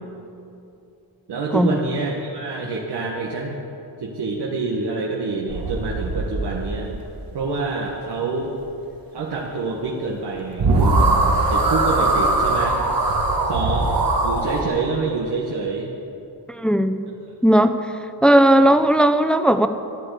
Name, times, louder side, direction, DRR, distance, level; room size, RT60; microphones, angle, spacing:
voice 1, 1.3-3.6 4.0-7.0 7.3-8.6 9.1-11.2 11.5-12.9 13.4-13.9 14.2-15.9, right 3 dB, 75° right, -2 dB, 1.6 m, -27 dB
sound 1, 5.5-7.1 10.2-10.3 10.6-14.6, right 2 dB, 55° right, 1.8 m, -20 dB
voice 2, 16.5-17.0 17.4-17.8 18.2-19.7, right 1 dB, ahead, 9 dB, 0.5 m, -16 dB
13.0 x 10.5 x 8.4 m, 2.7 s
wide cardioid pair, 145°, 41 cm